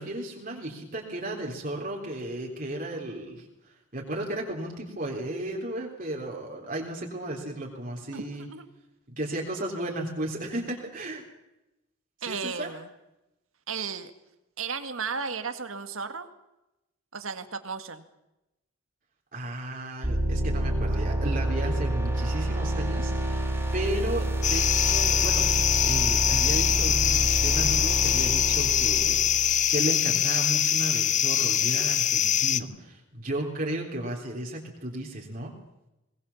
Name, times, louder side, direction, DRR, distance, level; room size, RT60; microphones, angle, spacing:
voice 1, 0.0-3.4 3.9-8.5 9.1-11.2 12.2-12.7 19.3-23.5 23.7-25.5 25.8-35.5, right 1 dB, 40° right, -1 dB, 3.6 m, -34 dB
voice 2, 8.1-8.7 12.2-12.9 13.7-14.1 14.6-16.3 17.1-18.0, right 5 dB, 90° right, 8 dB, 1.9 m, -34 dB
sound 1, 20.0-29.9, right 1 dB, 10° right, 3.9 m, -28 dB
sound 2, 24.4-32.6, left 10 dB, 35° left, 0.7 m, -23 dB
21.0 x 20.0 x 7.2 m, 0.93 s
head